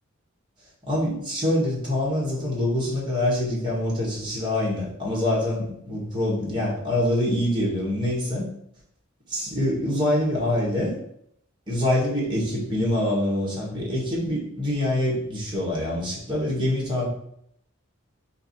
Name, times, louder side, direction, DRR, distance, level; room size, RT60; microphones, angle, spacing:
voice 1, 0.8-8.4 9.3-11.0 11.7-17.1, left 1 dB, 25° right, -5 dB, 1.4 m, -25 dB
4.5 x 2.7 x 4.2 m, 0.72 s
head